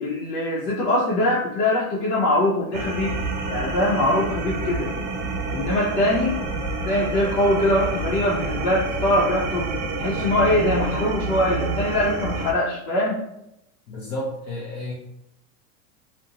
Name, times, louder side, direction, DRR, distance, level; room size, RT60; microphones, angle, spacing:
voice 1, 0.0-3.2 3.5-4.9 5.5-6.4 6.9-9.7 10.0-13.2, left 1 dB, 80° left, -5 dB, 0.8 m, -22 dB
sound 1, 2.7-12.5, right 3 dB, 65° right, 0.6 m, -28 dB
voice 2, 13.9-14.9, left 1 dB, 45° left, -6 dB, 0.5 m, -31 dB
2.5 x 2.1 x 2.8 m, 0.81 s
supercardioid pair, 170°, 45 cm